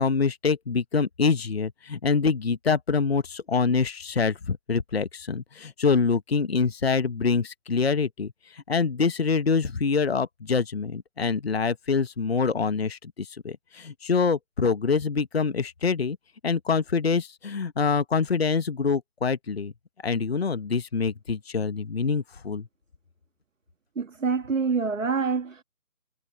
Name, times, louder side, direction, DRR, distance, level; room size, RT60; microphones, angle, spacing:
voice 1, 0.0-16.2 16.4-19.7 20.0-22.7, left 5 dB, 45° left, 1.0 m, -25 dB
voice 2, 24.0-25.6, right 5 dB, 60° right, 1.7 m, -26 dB
figure-of-eight pair, 155°, 44 cm